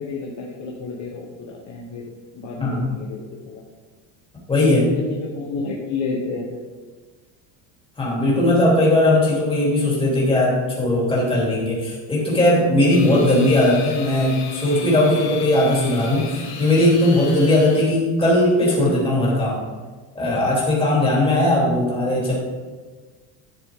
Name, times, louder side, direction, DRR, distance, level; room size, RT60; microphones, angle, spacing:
voice 1, 0.0-2.0 2.3-3.6 4.6-6.4 13.0-13.3, left 4 dB, 40° left, -2 dB, 1.2 m, -31 dB
voice 2, 4.5-4.9 8.0-19.6 20.1-22.3, left 1 dB, 10° left, -6 dB, 3.2 m, -18 dB
sound 1, 12.9-18.0, left 5 dB, 85° left, 3.1 m, -36 dB
11.5 x 6.8 x 3.7 m, 1.4 s
cardioid pair, 150°, 45 cm